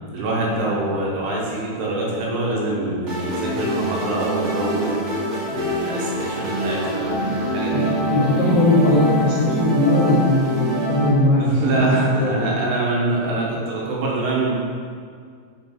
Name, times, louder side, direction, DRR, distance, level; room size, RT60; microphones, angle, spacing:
voice 1, 0.1-5.0 5.5-8.0 11.4-14.5, right 2 dB, 85° right, -4 dB, 3.2 m, -24 dB
sound 1, 3.1-11.1, right 1 dB, 55° right, 1.4 m, -25 dB
voice 2, 8.1-12.7, left 2 dB, 80° left, -6 dB, 2.0 m, -19 dB
8.0 x 3.2 x 4.4 m, 2.1 s
omnidirectional pair, 4.9 m